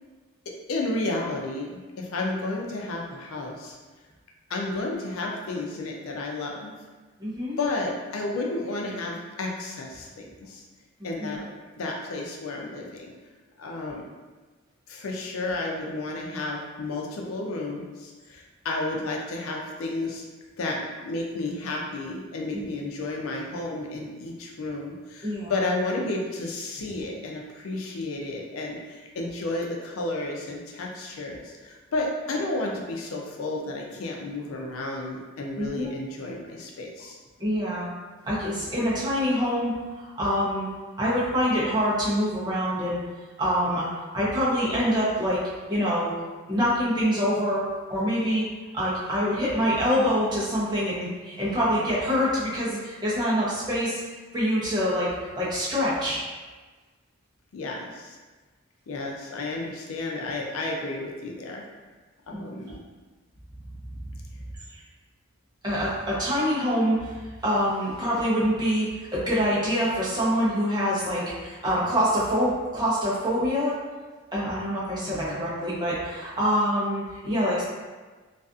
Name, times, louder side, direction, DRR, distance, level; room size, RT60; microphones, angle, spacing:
voice 1, 0.7-3.8 4.5-6.7 7.6-10.6 11.0-11.5 11.8-13.1 13.6-14.0 14.9-20.2 20.6-37.2 57.5-58.2 58.9-61.6 62.3-62.8 75.1-75.4, left 2 dB, 85° left, 0 dB, 0.4 m, -32 dB
voice 2, 7.2-7.6 11.0-11.4 22.5-22.6 25.2-25.5 35.6-35.9 37.4-37.9 38.2-40.7 41.0-43.0 43.4-43.9 44.1-45.4 45.7-46.1 46.5-48.4 48.7-54.0 54.3-55.1 55.4-56.2 62.3-62.6 64.7-64.8 65.6-67.1 67.4-73.7 74.3-77.6, equal, 20° right, -8 dB, 0.7 m, -25 dB
2.5 x 2.4 x 2.4 m, 1.3 s
head